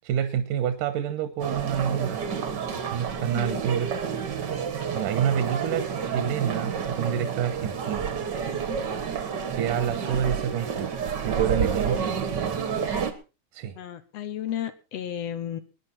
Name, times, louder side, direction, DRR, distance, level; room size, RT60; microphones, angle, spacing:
voice 1, 0.0-2.3 2.9-3.9 4.9-8.1 9.5-12.6 13.5-13.8, right 9 dB, 80° right, 9 dB, 2.5 m, -28 dB
sound 1, 1.4-13.1, right 6 dB, 50° right, 1.3 m, -29 dB
voice 2, 3.2-3.6 13.8-15.6, left 10 dB, 65° left, 12 dB, 1.7 m, -33 dB
21.0 x 10.0 x 4.3 m, 0.32 s
omnidirectional pair, 3.7 m